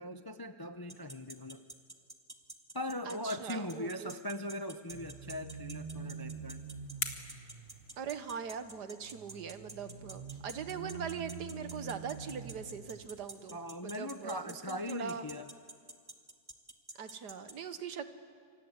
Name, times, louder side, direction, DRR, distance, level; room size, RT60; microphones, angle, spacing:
voice 1, 0.0-1.6 2.7-6.6 13.5-15.5, left 1 dB, 30° left, 8 dB, 0.4 m, -40 dB
sound 1, 0.9-17.5, right 2 dB, 15° right, 1.4 m, -47 dB
voice 2, 3.1-4.1 8.0-15.3 17.0-18.1, right 7 dB, 75° right, 10 dB, 1.8 m, -41 dB
sound 2, 4.9-13.3, right 5 dB, 35° right, 1.2 m, -46 dB
sound 3, 5.9-8.6, left 5 dB, 85° left, 2.5 m, -44 dB
28.5 x 25.0 x 8.1 m, 2.1 s
omnidirectional pair, 1.8 m